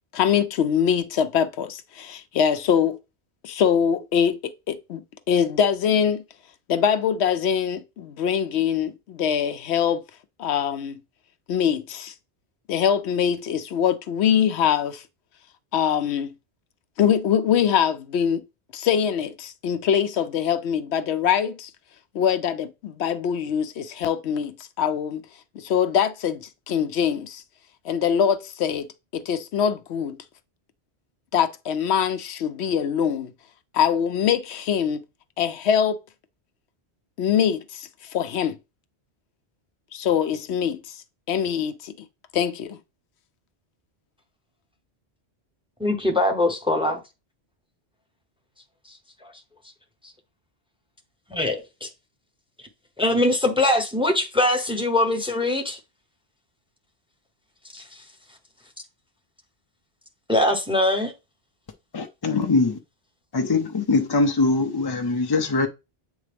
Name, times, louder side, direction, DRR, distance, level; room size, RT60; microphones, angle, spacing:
voice 1, 0.1-3.0 3.4-6.2 6.7-10.0 10.4-11.0 11.5-12.1 12.7-15.0 15.7-16.3 17.0-18.4 18.7-21.7 22.1-25.2 25.5-27.4 27.8-28.9 29.1-30.2 31.3-33.3 33.7-35.0 35.4-36.0 37.2-38.6 39.9-41.0 41.3-41.9 42.3-42.8, left 8 dB, 75° left, 0.9 m, -23 dB
voice 2, 45.8-47.0 49.2-49.3 51.3-51.9 53.0-55.8 57.7-58.0 60.3-61.1, left 1 dB, 5° right, 0.8 m, -22 dB
voice 3, 61.9-62.8 63.3-65.7, left 3 dB, 30° left, 0.4 m, -22 dB
8.0 x 3.6 x 3.4 m
omnidirectional pair, 1.1 m